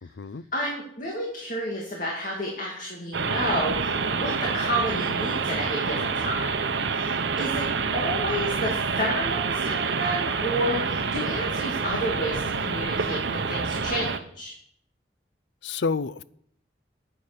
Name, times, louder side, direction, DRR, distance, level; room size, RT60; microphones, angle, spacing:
voice 1, 0.0-0.4 7.4-7.5 15.6-16.2, left 4 dB, 80° left, 0.5 m, -29 dB
voice 2, 0.5-6.5 6.9-7.7 7.9-14.5, equal, 45° left, 2.5 m, -30 dB
sound 1, 3.1-14.2, right 5 dB, 85° right, 0.9 m, -27 dB
9.6 x 9.0 x 6.8 m
head